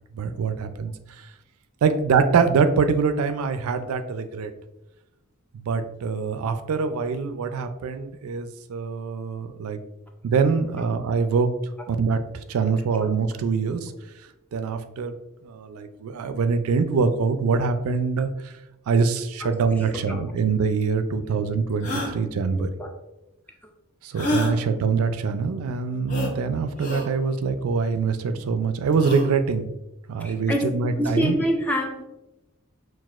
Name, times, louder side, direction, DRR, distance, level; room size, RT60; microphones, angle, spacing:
voice 1, 0.1-1.3 1.8-4.5 5.5-9.8 10.2-11.5 11.9-12.2 12.5-13.9 14.5-15.1 15.4-18.5 18.9-22.7 24.0-29.7 30.1-31.4, right 5 dB, 80° right, 9 dB, 0.3 m, -24 dB
voice 2, 19.8-20.2 22.6-22.9 30.2-30.6 30.9-32.0, equal, 5° left, 2 dB, 0.3 m, -26 dB
sound 1, 20.8-20.9 21.8-22.1 24.1-24.5 26.1-26.3 26.8-27.1 28.9-29.3, left 1 dB, 35° left, 0.7 m, -27 dB
5.9 x 2.4 x 2.4 m, 0.95 s
head